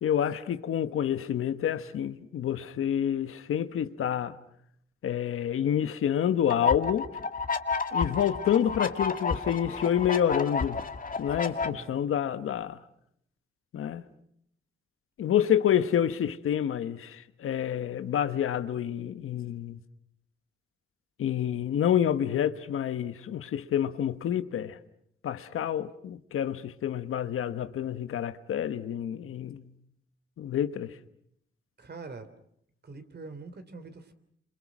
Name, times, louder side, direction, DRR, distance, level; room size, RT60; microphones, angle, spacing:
voice 1, 0.0-4.4 5.0-7.1 7.9-10.8 11.2-12.8 13.7-14.0 15.2-19.8 21.2-24.8 25.2-29.6 30.4-31.0, left 9 dB, 90° left, 1.2 m, -28 dB
sound 1, 6.5-11.7, left 4 dB, 40° left, 2.0 m, -31 dB
voice 2, 31.8-32.3 32.8-34.1, right 3 dB, 50° right, 3.2 m, -44 dB
28.0 x 27.0 x 6.1 m
cardioid pair, 65°, 21 cm